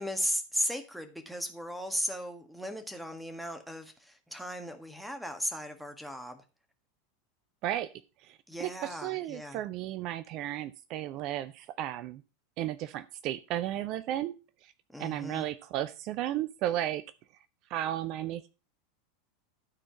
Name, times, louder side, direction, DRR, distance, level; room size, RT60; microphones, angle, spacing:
voice 1, 0.0-6.4 8.5-9.6 14.9-15.4, equal, ahead, 7 dB, 1.7 m, -36 dB
voice 2, 8.2-12.2 12.6-14.3 14.6-14.7 15.0-17.0 17.7-18.5, right 12 dB, 45° right, 14 dB, 0.5 m, -34 dB
12.5 x 4.4 x 5.8 m, 0.32 s
figure-of-eight pair, 85°, 0 cm